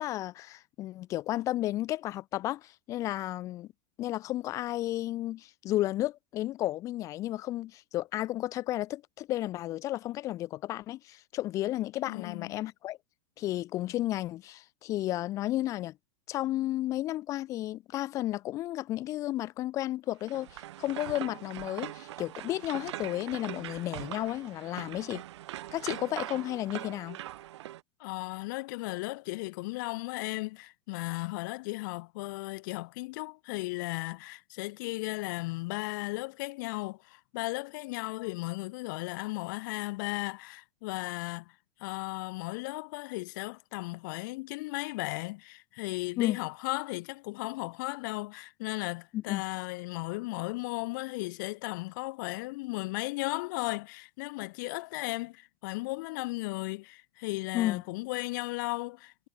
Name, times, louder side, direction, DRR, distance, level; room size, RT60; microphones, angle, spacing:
voice 1, 0.0-3.7 4.0-13.0 13.4-15.9 16.3-25.2 25.7-27.2 46.2-46.4 49.1-49.4 57.5-57.8, left 15 dB, 20° left, 0.7 m, -33 dB
voice 2, 12.1-12.6 28.0-41.5 41.8-59.3, left 23 dB, 40° left, 1.3 m, -36 dB
sound 1, 20.2-27.8, right 14 dB, 65° right, 1.5 m, -42 dB
supercardioid pair, 175°, 16 cm